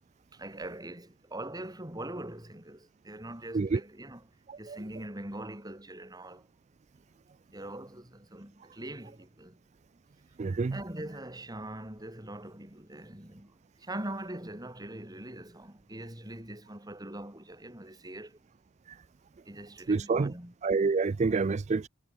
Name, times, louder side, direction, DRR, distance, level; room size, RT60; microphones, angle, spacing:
voice 1, 0.3-4.2 4.6-6.5 7.5-9.6 10.7-18.4 19.5-20.5, right 1 dB, 20° right, 3.7 m, -42 dB
voice 2, 10.4-10.8 19.9-20.3 20.6-21.9, right 4 dB, 35° right, 0.4 m, -27 dB
head